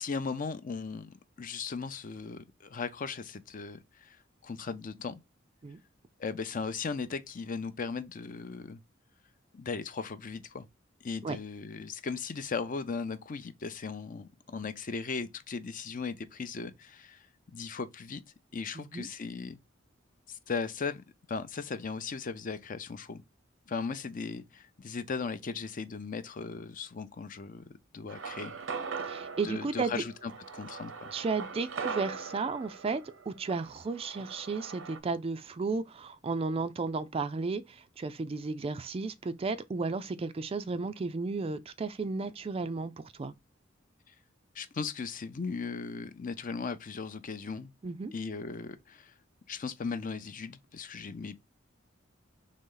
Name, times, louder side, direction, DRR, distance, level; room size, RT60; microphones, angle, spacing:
voice 1, 0.0-4.2 4.4-5.2 6.2-8.8 9.5-10.7 11.0-18.2 18.5-19.6 20.3-23.2 23.7-28.5 29.4-31.1 44.5-47.7 48.1-49.1 49.5-51.4, left 4 dB, 45° left, 0.5 m, -37 dB
voice 2, 18.8-19.1 29.0-30.0 31.1-43.3 47.8-48.1, right 4 dB, 30° right, 0.3 m, -34 dB
sound 1, 28.1-35.0, right 5 dB, 85° right, 0.7 m, -41 dB
4.0 x 3.2 x 3.8 m
head